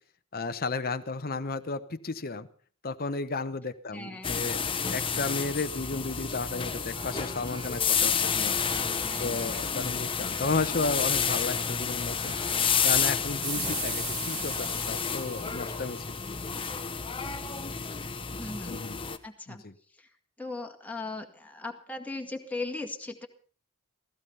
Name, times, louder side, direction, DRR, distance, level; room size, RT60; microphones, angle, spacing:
voice 1, 0.3-2.5 2.8-4.6 4.9-8.5 9.2-12.4 12.8-16.1 18.6-19.0 19.5-19.7, left 3 dB, 45° left, 10 dB, 0.9 m, -33 dB
voice 2, 3.9-4.4 9.0-9.8 13.5-13.8 18.3-18.8 19.2-19.6 20.0-20.1 20.4-23.3, left 2 dB, 5° left, 3 dB, 2.0 m, -38 dB
sound 1, 4.2-19.2, left 6 dB, 25° left, 1.1 m, -30 dB
Alarm, 6.9-13.1, right 3 dB, 20° right, 1.0 m, -47 dB
sound 2, 13.4-16.7, right 5 dB, 75° right, 5.2 m, -38 dB
16.0 x 15.5 x 5.5 m, 0.42 s
head